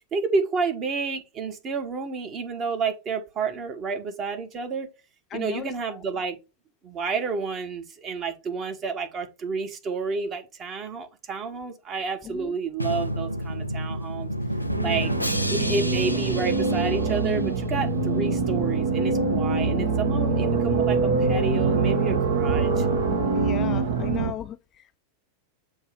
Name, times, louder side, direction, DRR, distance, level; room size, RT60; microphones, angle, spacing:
voice 1, 0.1-4.9 5.3-6.4 6.8-14.3 14.8-15.1 15.5-22.9, right 4 dB, 30° right, 1.3 m, -30 dB
voice 2, 5.3-6.0 12.2-12.6 14.7-15.2 23.3-25.0, left 10 dB, 30° left, 0.4 m, -36 dB
Drum, 12.8-17.7, equal, 90° right, 0.5 m, -30 dB
sound 1, 14.6-24.3, right 4 dB, 60° right, 1.3 m, -24 dB
7.1 x 3.1 x 5.0 m
figure-of-eight pair, 90°, 0 cm